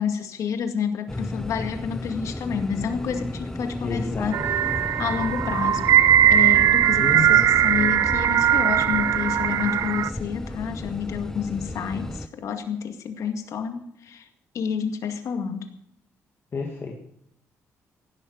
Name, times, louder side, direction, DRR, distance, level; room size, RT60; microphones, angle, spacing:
voice 1, 0.0-4.3 5.0-14.3 14.5-15.7, left 7 dB, 75° left, 6 dB, 2.1 m, -29 dB
sound 1, 1.1-12.3, left 1 dB, 10° left, 0.7 m, -34 dB
voice 2, 3.8-4.5 7.0-7.5 16.5-17.0, left 4 dB, 45° left, 1 dB, 2.1 m, -30 dB
sound 2, 4.3-10.1, right 11 dB, 75° right, 0.6 m, -19 dB
16.0 x 12.0 x 6.4 m, 0.74 s
cardioid pair, 95°, 6 cm